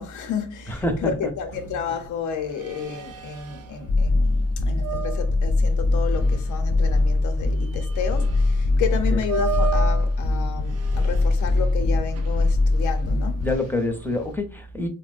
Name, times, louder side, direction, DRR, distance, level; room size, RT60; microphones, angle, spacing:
voice 1, 0.0-13.4, left 7 dB, 80° left, 0.8 m, -31 dB
voice 2, 0.7-1.4 8.2-8.3 8.9-9.2 13.4-14.9, left 2 dB, 5° left, 0.8 m, -27 dB
sound 1, 1.5-14.3, right 10 dB, 55° right, 0.6 m, -37 dB
sound 2, 3.9-13.6, left 2 dB, 40° left, 0.7 m, -22 dB
4.1 x 2.1 x 2.4 m
cardioid pair, 90°, 30 cm